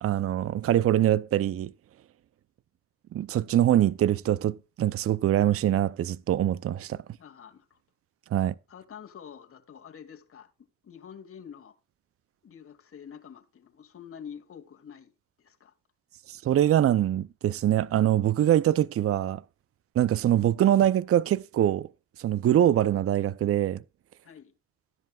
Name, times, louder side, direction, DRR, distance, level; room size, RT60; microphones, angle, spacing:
voice 1, 0.0-1.7 3.1-7.0 8.3-8.5 16.3-19.4 20.0-21.9 22.2-23.8, right 12 dB, 50° right, 0.6 m, -24 dB
voice 2, 7.2-7.8 8.7-10.5 10.8-11.7 12.4-15.1 15.4-15.7 24.2-24.5, left 8 dB, 45° left, 2.5 m, -47 dB
15.0 x 10.5 x 2.4 m
cardioid pair, 90°, 30 cm